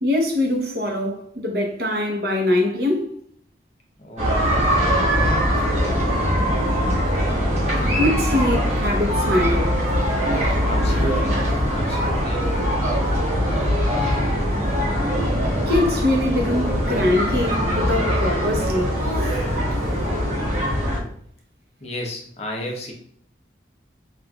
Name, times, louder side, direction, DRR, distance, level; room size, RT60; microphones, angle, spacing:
voice 1, 0.0-3.1 7.8-9.8 15.7-19.3 20.3-20.4, left 1 dB, 60° right, 0.8 m, -23 dB
voice 2, 4.0-4.8 10.6-11.4 11.7-12.9 21.8-22.9, left 1 dB, 35° left, 0.7 m, -33 dB
sound 1, 4.2-21.0, equal, 40° right, 1.1 m, -22 dB
sound 2, 5.3-16.8, equal, 5° left, 0.6 m, -31 dB
5.8 x 2.5 x 2.3 m
head